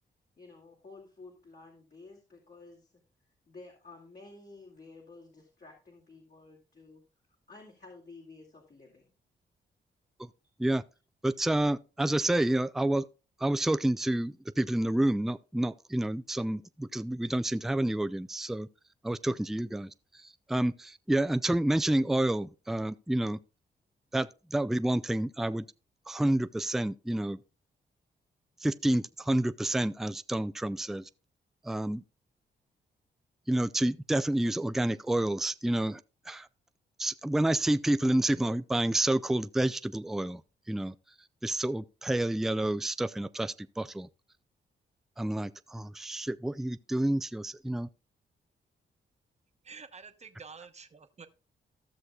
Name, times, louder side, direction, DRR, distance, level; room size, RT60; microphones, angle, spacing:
voice 1, 0.4-3.0 3.5-7.0 7.5-9.1, left 3 dB, 55° left, 2.4 m, -52 dB
voice 2, 11.2-13.1 13.4-18.7 19.0-19.9 20.2-23.4 24.1-25.6 26.1-27.4 28.6-31.0 31.6-32.0 33.5-36.0 36.3-36.5 37.0-40.4 40.7-40.9 41.4-44.1 45.2-47.9, right 1 dB, ahead, 0.4 m, -29 dB
voice 3, 49.6-51.3, right 5 dB, 35° right, 1.0 m, -48 dB
15.0 x 6.4 x 2.3 m
cardioid pair, 60°, 19 cm